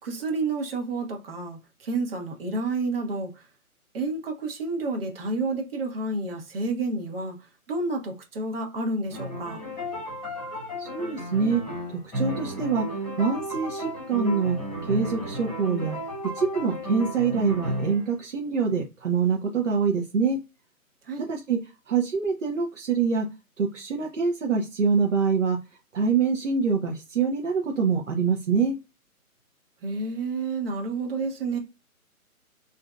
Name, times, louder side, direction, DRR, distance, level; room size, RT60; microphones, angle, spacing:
voice 1, 0.0-3.4 3.9-9.6 21.0-21.2 29.8-31.6, right 3 dB, 40° right, 1.2 m, -30 dB
sound 1, 9.1-18.1, right 1 dB, 10° left, 1.4 m, -33 dB
voice 2, 10.8-11.6 11.9-20.4 21.2-21.6 21.9-23.3 23.6-25.6 25.9-28.8, right 5 dB, 55° right, 0.9 m, -25 dB
3.7 x 2.7 x 2.3 m
figure-of-eight pair, 155°, 44 cm